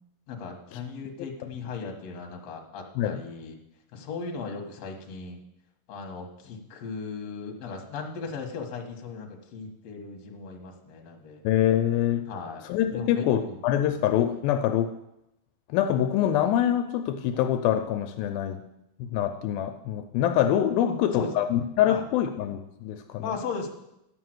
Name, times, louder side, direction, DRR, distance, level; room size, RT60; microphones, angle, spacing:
voice 1, 0.3-3.6 3.9-5.4 5.9-11.4 12.3-13.6 20.8-21.3 21.9-22.1 23.2-23.7, left 5 dB, 55° left, 2 dB, 2.3 m, -37 dB
voice 2, 11.4-12.2 12.7-14.9 15.7-18.6 19.0-23.3, left 11 dB, 85° left, 7 dB, 2.4 m, -25 dB
11.5 x 5.8 x 7.7 m, 0.86 s
omnidirectional pair, 4.2 m